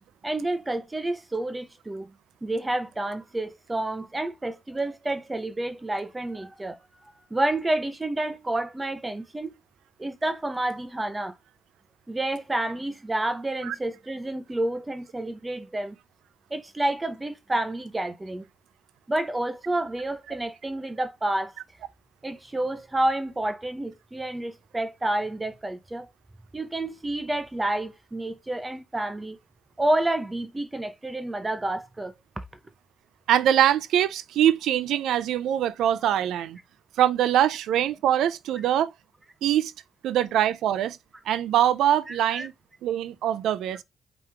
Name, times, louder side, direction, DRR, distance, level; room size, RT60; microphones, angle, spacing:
voice 1, 0.2-2.1 2.4-6.8 7.3-9.5 10.0-11.4 12.1-16.0 16.5-18.5 19.1-21.5 22.2-26.1 26.5-29.4 29.8-32.4 42.1-42.5, right 1 dB, 15° right, 0.6 m, -29 dB
voice 2, 33.3-36.6 37.0-38.9 39.4-39.7 40.0-41.0 41.3-42.5 42.8-43.8, right 11 dB, 80° right, 0.3 m, -23 dB
4.9 x 3.0 x 3.3 m
cardioid pair, 90°, 0 cm